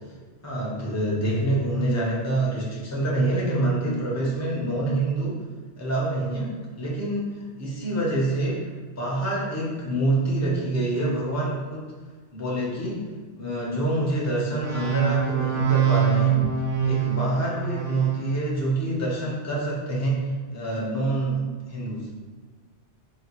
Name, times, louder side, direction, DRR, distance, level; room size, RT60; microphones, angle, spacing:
voice 1, 0.4-5.3 5.8-8.6 9.0-11.9 12.3-13.1 13.4-16.4 16.8-20.2 20.5-21.4 21.7-22.1, right 2 dB, 20° left, -5 dB, 0.5 m, -26 dB
sound 1, 14.6-18.2, right 8 dB, 85° right, 1.0 m, -24 dB
3.9 x 2.3 x 3.0 m, 1.4 s
omnidirectional pair, 1.2 m